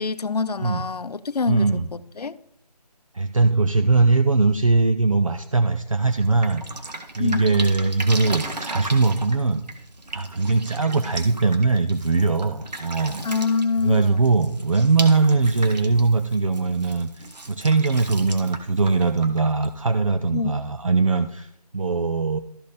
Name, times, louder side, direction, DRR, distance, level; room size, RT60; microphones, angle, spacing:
voice 1, 0.0-2.4 7.2-7.6 13.2-14.2 20.3-20.6, left 4 dB, 70° left, 0.6 m, -26 dB
voice 2, 1.5-1.9 3.1-6.6 7.2-9.6 10.1-13.2 13.8-22.4, right 3 dB, 55° right, 0.6 m, -21 dB
Drip, 6.0-20.1, right 2 dB, 85° right, 1.6 m, -37 dB
13.5 x 5.0 x 4.2 m
figure-of-eight pair, 180°, 21 cm